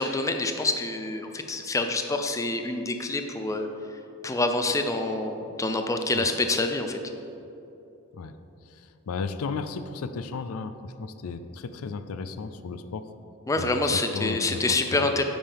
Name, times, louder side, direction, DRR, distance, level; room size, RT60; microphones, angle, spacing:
voice 1, 0.0-3.7 4.2-7.0 13.5-15.2, left 2 dB, 15° left, 6 dB, 0.4 m, -26 dB
voice 2, 8.7-13.1 13.6-15.1, left 4 dB, 80° left, 11 dB, 0.4 m, -34 dB
9.0 x 8.7 x 3.5 m, 2.9 s
head